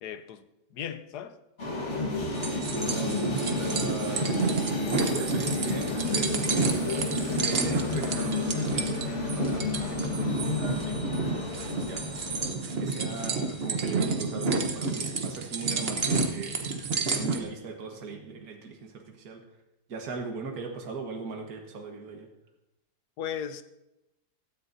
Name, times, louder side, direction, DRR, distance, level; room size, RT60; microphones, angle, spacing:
voice 1, 0.0-0.4 0.7-1.4 23.2-23.6, left 9 dB, 75° left, 1.2 m, -36 dB
sound 1, 1.6-12.5, left 3 dB, 45° left, 1.8 m, -31 dB
sound 2, 2.3-17.4, right 4 dB, 40° right, 1.1 m, -30 dB
voice 2, 2.5-4.4 5.1-7.0 7.4-12.1 12.8-19.4 19.9-22.3, right 4 dB, 60° right, 1.9 m, -39 dB
16.0 x 13.0 x 2.7 m
omnidirectional pair, 1.8 m